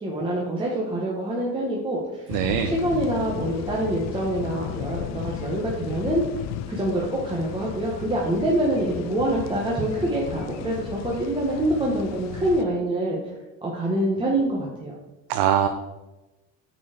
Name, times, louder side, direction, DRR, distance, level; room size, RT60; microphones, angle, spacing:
voice 1, 0.0-2.4 2.6-6.2 6.7-13.3 13.6-14.9, right 1 dB, 15° right, -4 dB, 1.3 m, -25 dB
sound 1, 2.3-12.6, left 9 dB, 50° left, 0.6 m, -35 dB
voice 2, 2.3-2.7 15.3-15.7, right 9 dB, 85° right, 5 dB, 0.8 m, -22 dB
9.4 x 4.7 x 5.1 m, 1.0 s
cardioid pair, 155°, 34 cm